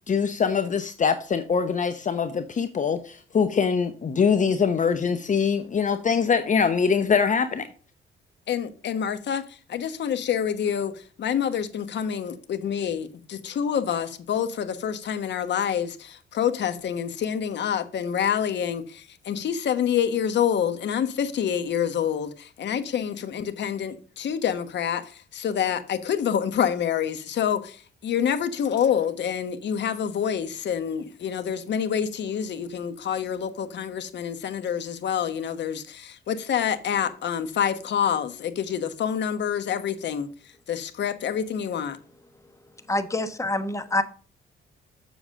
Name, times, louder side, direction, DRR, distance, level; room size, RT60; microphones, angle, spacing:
voice 1, 0.1-7.7, left 6 dB, 40° left, 0.8 m, -23 dB
voice 2, 8.5-9.4 9.7-10.9 11.2-25.0 25.3-40.3 40.7-42.0, left 8 dB, 60° left, 1.2 m, -27 dB
voice 3, 42.9-44.0, left 2 dB, 15° left, 1.1 m, -26 dB
7.2 x 7.0 x 3.7 m
cardioid pair, 90°, 20 cm